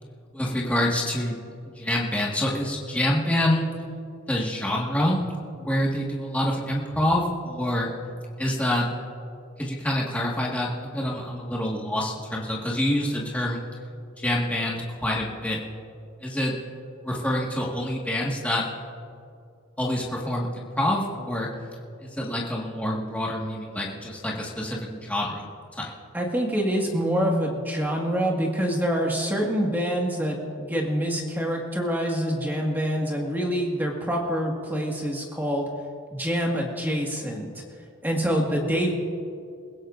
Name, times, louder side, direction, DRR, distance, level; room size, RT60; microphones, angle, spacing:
voice 1, 0.3-1.4 1.7-3.7 4.3-5.2 5.6-7.9 8.4-8.9 9.6-13.6 14.2-15.6 16.2-16.5 17.0-18.7 19.8-21.5 22.0-25.4 25.7-25.9, left 1 dB, 5° left, -4 dB, 1.8 m, -26 dB
voice 2, 26.1-35.7 36.1-37.5 38.0-38.9, equal, 10° right, -1 dB, 1.9 m, -26 dB
29.0 x 16.0 x 2.6 m, 2.4 s
head